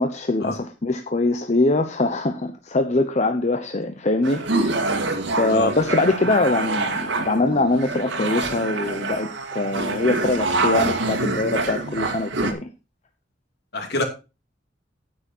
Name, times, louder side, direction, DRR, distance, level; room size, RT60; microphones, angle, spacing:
voice 1, 0.0-4.9 5.3-12.7, left 2 dB, 40° left, 7 dB, 0.9 m, -23 dB
sound 1, 4.2-12.5, right 2 dB, 75° right, 2.0 m, -26 dB
voice 2, 13.7-14.0, left 1 dB, 60° left, 5 dB, 2.8 m, -25 dB
9.5 x 9.2 x 4.4 m, 0.29 s
head